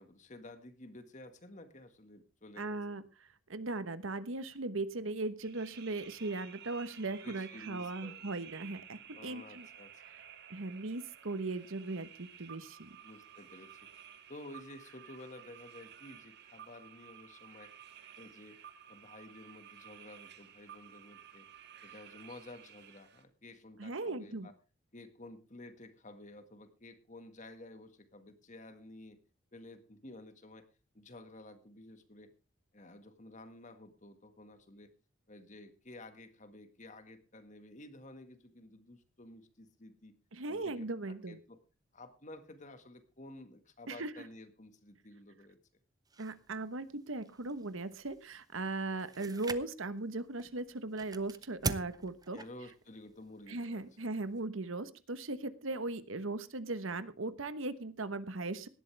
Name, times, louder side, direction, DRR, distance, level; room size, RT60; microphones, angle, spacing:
voice 1, 0.0-3.0 7.2-8.2 9.1-10.0 13.0-13.9 14.3-17.7 18.2-18.6 18.9-21.5 21.8-24.5 24.9-29.2 29.5-30.7 30.9-32.3 32.7-34.9 35.3-40.1 40.5-41.6 41.9-45.6 52.3-53.8, left 2 dB, 35° left, 9 dB, 1.8 m, -52 dB
voice 2, 2.6-9.7 10.5-13.0 23.8-24.5 40.3-41.4 43.9-44.1 46.2-52.4 53.5-58.7, right 2 dB, 70° right, 13 dB, 1.1 m, -38 dB
sound 1, 5.4-23.2, right 9 dB, 55° right, 1.6 m, -54 dB
sound 2, 46.1-54.5, right 3 dB, 20° right, 0.7 m, -45 dB
18.0 x 12.0 x 3.4 m, 0.31 s
head